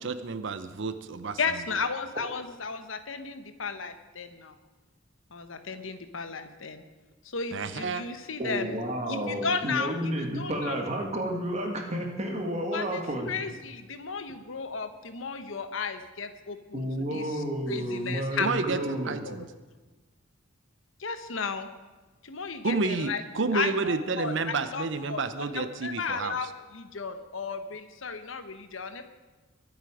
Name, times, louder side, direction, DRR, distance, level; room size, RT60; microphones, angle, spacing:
voice 1, 0.0-1.4 7.5-8.1 18.4-19.5 22.6-26.5, right 4 dB, 65° right, 11 dB, 0.7 m, -30 dB
voice 2, 1.4-4.5 5.3-6.8 7.2-8.7 9.1-9.9 10.4-10.8 12.7-18.5 19.2-19.4 21.0-21.7 22.2-23.2 23.5-25.2 25.5-29.1, left 5 dB, 75° left, 9 dB, 1.1 m, -34 dB
voice 3, 8.4-13.3 16.7-19.2, equal, 35° right, 2 dB, 1.8 m, -31 dB
23.0 x 8.2 x 5.0 m, 1.2 s
head